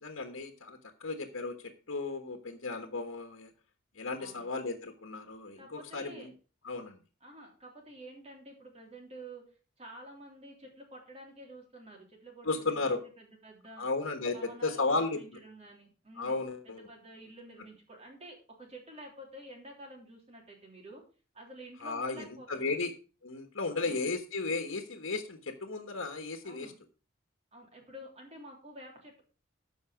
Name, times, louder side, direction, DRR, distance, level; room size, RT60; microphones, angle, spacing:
voice 1, 0.0-3.5 4.0-6.3 6.6-7.0 12.4-13.0 13.8-15.2 16.2-16.8 21.8-22.9 23.2-26.7, left 3 dB, 85° left, 5 dB, 1.3 m, -34 dB
voice 2, 4.2-4.5 5.6-6.3 7.2-9.4 9.8-13.9 14.3-16.4 16.6-21.0 21.3-22.8 23.8-24.1 26.4-26.7 27.5-29.2, right 1 dB, 30° right, 1 dB, 3.3 m, -50 dB
13.5 x 5.5 x 4.9 m, 0.36 s
head